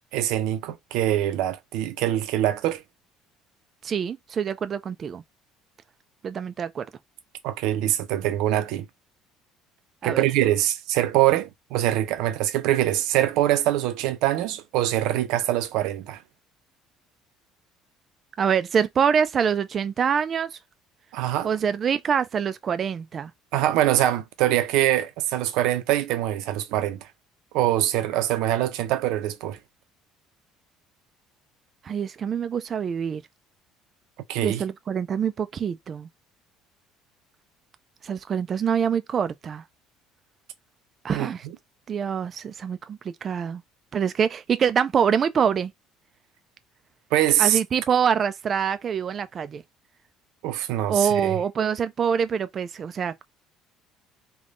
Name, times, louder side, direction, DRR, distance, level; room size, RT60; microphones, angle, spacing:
voice 1, 0.1-2.8 7.4-8.9 10.0-16.2 21.1-21.5 23.5-27.0 27.5-29.6 34.3-34.6 41.1-41.3 47.1-47.6 50.4-51.4, right 13 dB, 75° right, 0.6 m, -23 dB
voice 2, 3.8-5.2 6.2-6.8 10.0-10.3 18.4-20.6 21.4-23.3 31.8-33.2 34.4-36.1 38.0-39.6 41.0-41.5 41.9-43.6 43.9-45.7 47.4-49.6 50.9-53.2, right 7 dB, 35° right, 0.4 m, -25 dB
3.5 x 2.3 x 3.7 m
cardioid pair, 130°, 0 cm